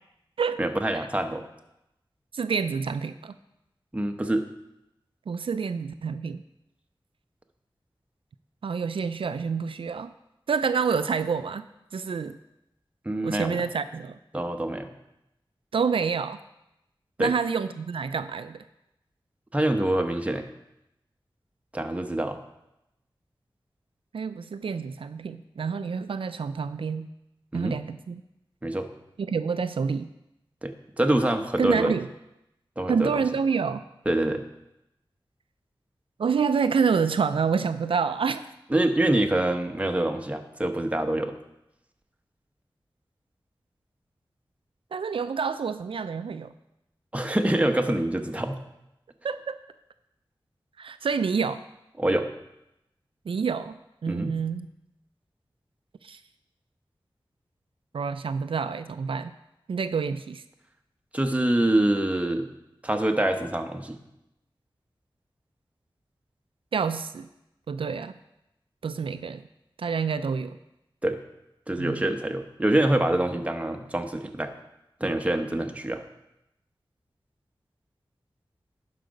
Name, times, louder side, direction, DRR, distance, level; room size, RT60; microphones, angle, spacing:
voice 1, 0.6-1.4 3.9-4.5 13.0-13.6 14.3-14.9 17.2-17.3 19.5-20.4 21.7-22.4 27.5-27.8 28.6-28.9 30.6-31.9 32.8-33.2 34.1-34.4 38.7-41.3 47.1-48.6 52.0-52.3 54.1-54.3 61.1-62.5 62.8-64.0 71.0-71.2 71.7-74.5 75.0-76.0, right 1 dB, 15° right, 5 dB, 0.9 m, -25 dB
voice 2, 2.3-3.3 5.3-6.4 8.6-10.1 10.5-11.7 11.9-12.4 13.2-14.2 15.7-16.4 17.2-18.6 24.1-27.1 27.5-28.2 29.2-30.1 31.6-32.1 32.9-33.8 36.2-38.4 44.9-46.5 49.2-49.6 50.8-51.6 53.3-54.7 56.0-56.2 57.9-59.3 59.7-60.4 66.7-67.3 67.7-68.1 68.8-69.4 69.8-70.6 71.8-72.0, right 5 dB, 80° right, 11 dB, 0.3 m, -28 dB
11.5 x 4.8 x 5.2 m, 0.88 s
wide cardioid pair, 65°, 9 cm